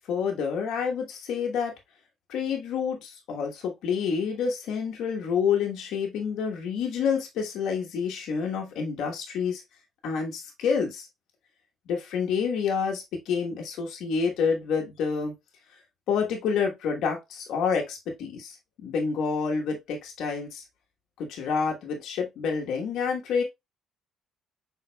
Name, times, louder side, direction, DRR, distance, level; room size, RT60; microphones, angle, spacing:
voice 1, 0.1-1.7 2.3-9.6 10.0-11.1 11.9-15.3 16.1-20.6 21.2-23.4, left 6 dB, 70° left, 1.1 m, -28 dB
6.1 x 3.8 x 2.2 m
cardioid pair, 165°, 0 cm